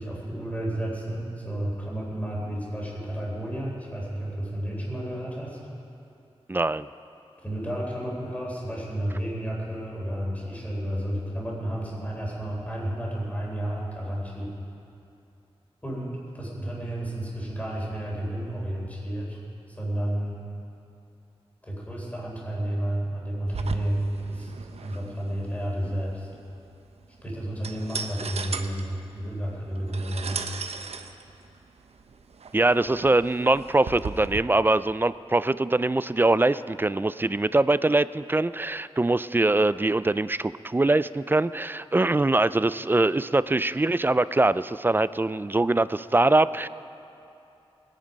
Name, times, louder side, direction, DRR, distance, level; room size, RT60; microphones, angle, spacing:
voice 1, 0.0-5.6 7.4-14.5 15.8-19.4 19.7-20.4 21.6-24.5 24.8-26.3 27.2-30.5, right 1 dB, 15° left, -4 dB, 3.7 m, -31 dB
voice 2, 6.5-6.9 32.5-46.7, right 2 dB, 20° right, 16 dB, 0.3 m, -23 dB
sound 1, 23.5-34.4, right 5 dB, 90° right, 0.7 m, -38 dB
20.0 x 9.4 x 5.2 m, 2.8 s
wide cardioid pair, 70°, 10 cm